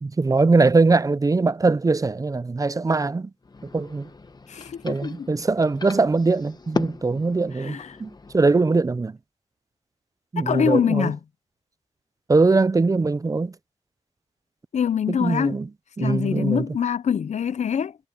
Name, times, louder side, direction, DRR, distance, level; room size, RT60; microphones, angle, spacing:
voice 1, 0.0-3.3 3.7-4.1 4.8-9.2 10.3-11.1 12.3-13.5 15.1-15.7 16.0-16.6, right 3 dB, 30° right, 0.5 m, -21 dB
sound 1, 3.4-8.5, left 3 dB, 35° left, 1.1 m, -36 dB
voice 2, 4.5-5.3 7.1-7.2 7.5-8.0 10.4-11.2 14.7-15.6 16.0-18.0, left 7 dB, 85° left, 0.7 m, -24 dB
wide cardioid pair, 100°, 12 cm